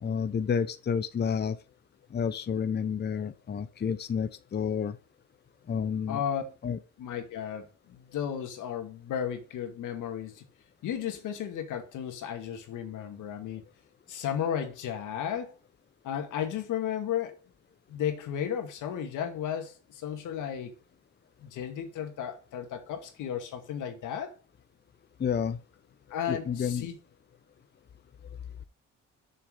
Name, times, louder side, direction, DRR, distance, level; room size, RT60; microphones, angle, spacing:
voice 1, 0.0-1.6 2.1-5.0 5.7-6.2 6.6-6.8 25.2-25.6 26.3-26.9, left 7 dB, 35° left, 0.7 m, -30 dB
voice 2, 6.1-6.4 7.0-10.4 10.8-13.6 14.1-15.5 16.0-17.4 17.9-20.7 21.4-24.4 26.1-27.0, left 9 dB, 85° left, 2.1 m, -34 dB
6.7 x 6.4 x 5.0 m
cardioid pair, 90°, 30 cm